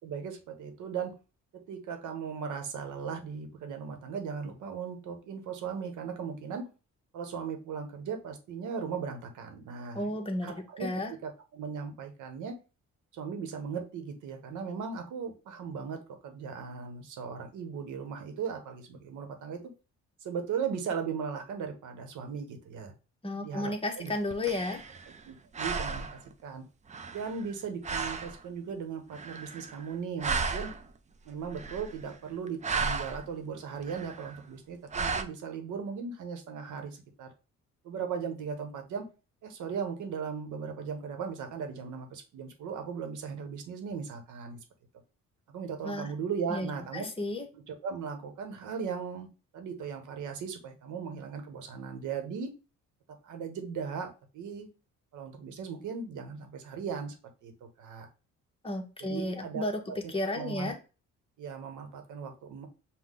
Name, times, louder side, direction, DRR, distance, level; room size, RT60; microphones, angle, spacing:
voice 1, 0.0-1.1 1.5-6.6 7.1-12.5 13.1-19.6 20.2-22.9 23.4-24.1 25.3-26.6 27.1-30.7 31.2-37.3 37.8-39.0 39.4-44.6 45.5-47.1 47.5-49.3 49.5-52.5 53.2-54.7 55.1-57.1 57.4-57.5 57.8-58.1 59.0-60.7 61.4-62.7, right 6 dB, 75° right, 6 dB, 1.0 m, -38 dB
voice 2, 9.9-11.1 23.2-24.8 45.8-46.1 46.5-46.7 46.9-47.5 58.6-59.8 60.1-60.8, left 1 dB, 20° left, 3 dB, 1.0 m, -33 dB
sound 1, 24.1-25.3 25.5-26.3 26.9-27.6 27.8-28.4 29.1-29.9 30.2-31.0 31.4-32.1 32.5-33.3 33.8-34.4 34.9-35.2, right 4 dB, 25° right, 0.4 m, -34 dB
5.5 x 2.3 x 3.7 m, 0.32 s
cardioid pair, 90°, 30 cm